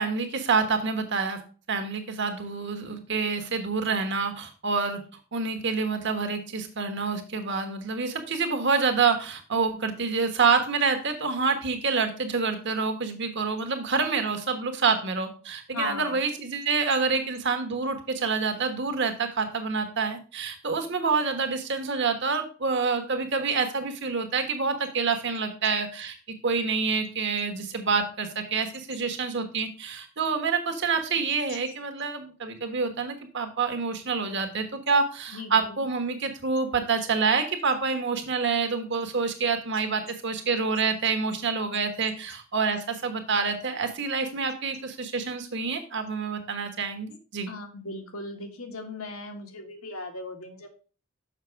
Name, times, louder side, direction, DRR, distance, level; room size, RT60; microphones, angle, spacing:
voice 1, 0.0-1.4 1.7-5.0 5.3-26.1 26.4-47.5, right 5 dB, 55° right, 6 dB, 1.4 m, -27 dB
voice 2, 15.7-16.2 35.3-35.9 47.5-50.7, left 2 dB, 80° left, 4 dB, 1.7 m, -37 dB
6.7 x 6.0 x 4.6 m, 0.37 s
head